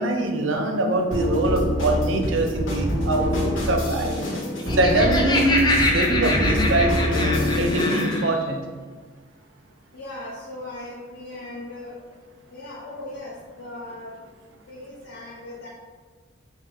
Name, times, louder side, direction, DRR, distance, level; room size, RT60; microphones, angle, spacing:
voice 1, 0.0-4.2 4.8-8.6, right 2 dB, 80° right, 3 dB, 0.5 m, -23 dB
sound 1, 1.1-8.2, left 1 dB, 90° left, 1.0 m, -25 dB
Laughter, 4.4-8.3, left 2 dB, 20° left, 0.3 m, -25 dB
voice 2, 8.0-8.6 9.9-12.0 12.5-14.1 14.7-15.7, left 1 dB, 65° left, -5 dB, 0.7 m, -38 dB
4.5 x 2.4 x 3.7 m, 1.5 s
head